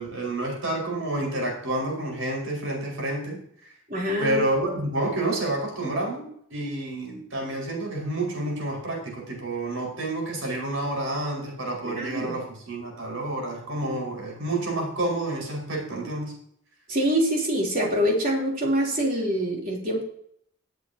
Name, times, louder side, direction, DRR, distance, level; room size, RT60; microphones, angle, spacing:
voice 1, 0.0-3.7 4.2-16.3, right 1 dB, 70° right, -1 dB, 5.2 m, -29 dB
voice 2, 3.9-4.4 11.8-12.3 16.9-20.0, equal, 40° right, -2 dB, 3.3 m, -25 dB
18.5 x 8.4 x 2.9 m, 0.66 s
head